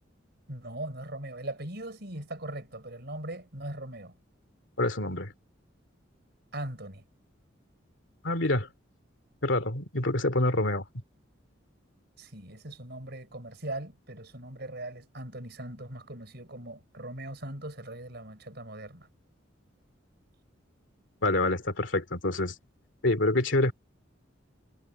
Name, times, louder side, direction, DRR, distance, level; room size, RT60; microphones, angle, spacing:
voice 1, 0.5-4.2 6.5-7.0 12.2-19.1, right 1 dB, 55° right, 5.3 m, -40 dB
voice 2, 4.8-5.3 8.2-8.7 9.4-10.8 21.2-22.6 23.0-23.7, left 2 dB, 70° left, 2.6 m, -26 dB
head